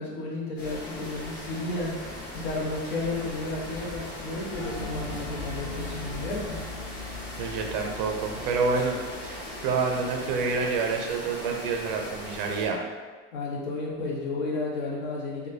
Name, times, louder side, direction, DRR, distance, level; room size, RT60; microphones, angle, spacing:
voice 1, 0.0-2.0 2.3-6.6 13.3-15.5, left 2 dB, 55° left, -4 dB, 1.0 m, -32 dB
sound 1, 0.6-12.7, left 1 dB, 40° left, 1.2 m, -39 dB
sound 2, 4.5-11.4, left 2 dB, 20° left, 0.6 m, -42 dB
voice 2, 7.4-9.0 9.2-12.8, right 4 dB, 55° right, 2 dB, 0.4 m, -28 dB
4.7 x 2.2 x 2.6 m, 1.4 s
cardioid pair, 180°, 31 cm